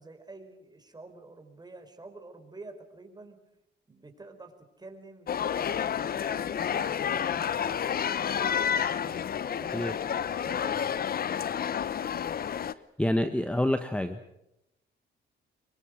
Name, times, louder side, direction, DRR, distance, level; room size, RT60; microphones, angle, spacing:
voice 1, 0.0-3.4 3.9-10.9, right 3 dB, 20° right, 6 dB, 5.0 m, -49 dB
sound 1, 5.3-12.7, left 8 dB, 50° left, 0.9 m, -30 dB
voice 2, 13.0-14.2, left 1 dB, 5° left, 9 dB, 1.4 m, -27 dB
26.0 x 23.5 x 6.5 m, 0.86 s
cardioid pair, 90°, 20 cm